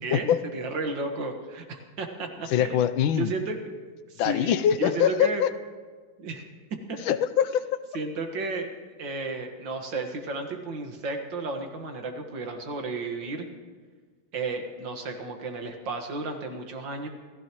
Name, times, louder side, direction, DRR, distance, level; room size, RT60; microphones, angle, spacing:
voice 1, 0.0-2.8 3.2-3.7 4.1-5.4 6.2-6.5 6.9-7.0 7.9-8.7 9.0-13.5 14.3-17.1, right 3 dB, 65° right, 4 dB, 2.3 m, -33 dB
voice 2, 2.5-3.3 4.2-5.5 7.0-7.8, left 9 dB, 80° left, 12 dB, 1.5 m, -23 dB
28.5 x 15.5 x 3.1 m, 1.5 s
omnidirectional pair, 2.2 m